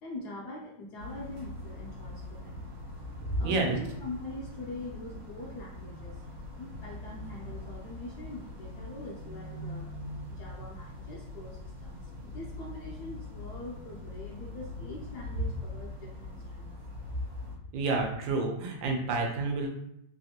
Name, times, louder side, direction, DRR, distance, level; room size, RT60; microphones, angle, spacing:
voice 1, 0.0-2.6 3.4-6.2 6.5-10.0 10.3-16.7, left 1 dB, 70° left, -2 dB, 1.0 m, -43 dB
sound 1, 1.0-17.6, left 2 dB, 60° right, 1.1 m, -43 dB
voice 2, 3.4-3.8 17.7-19.7, right 3 dB, 80° right, 1 dB, 1.3 m, -29 dB
3.4 x 2.4 x 2.7 m, 0.78 s
omnidirectional pair, 2.1 m